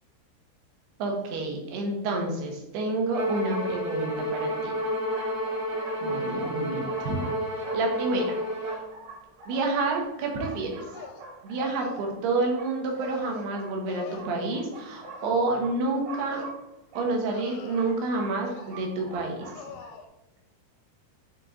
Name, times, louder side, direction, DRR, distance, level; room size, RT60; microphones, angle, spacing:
voice 1, 1.0-4.7 6.0-7.2 7.6-8.4 8.6-8.8 9.5-10.8 11.4-16.4 16.9-19.5, right 3 dB, 80° right, 1 dB, 3.2 m, -29 dB
Bowed string instrument, 3.1-8.9, equal, 40° right, 1.5 m, -30 dB
sound 1, 4.1-19.9, right 3 dB, 55° right, 2.0 m, -46 dB
sound 2, 9.7-10.1 10.8-11.3 11.8-12.0 12.8-13.5 13.9-14.2 15.1-15.4 16.1-16.5 17.3-18.0 18.5-18.9 19.5-20.1, left 6 dB, 75° left, 2.2 m, -44 dB
7.4 x 3.8 x 4.0 m, 0.92 s
omnidirectional pair, 4.6 m